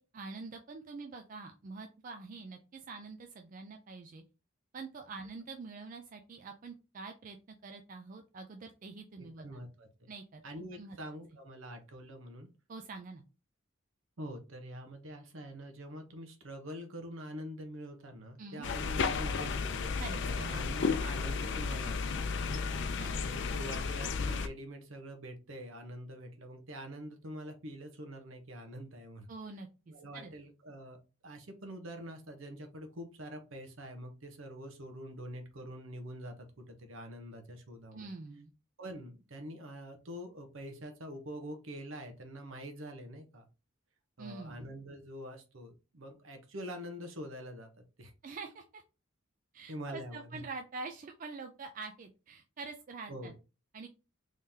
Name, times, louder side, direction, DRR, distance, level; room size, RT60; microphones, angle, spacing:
voice 1, 0.0-4.2 4.7-7.4 7.6-9.6 10.1-10.4 10.7-11.0 12.7-13.2 18.4-18.7 20.0-20.6 22.9-23.1 29.3-30.3 37.9-38.5 44.2-44.7 48.2-48.8 49.5-53.3 53.7-53.9, right 4 dB, 40° right, 5 dB, 0.4 m, -45 dB
voice 2, 9.2-10.1 10.4-12.5 14.2-29.3 29.9-31.0 31.2-38.1 38.8-43.5 44.2-47.7 48.0-48.1 49.7-50.4 53.1-53.3, equal, 70° right, 6 dB, 0.9 m, -45 dB
sound 1, 18.6-24.5, left 5 dB, 55° left, 0.4 m, -33 dB
3.7 x 3.2 x 2.7 m, 0.31 s
head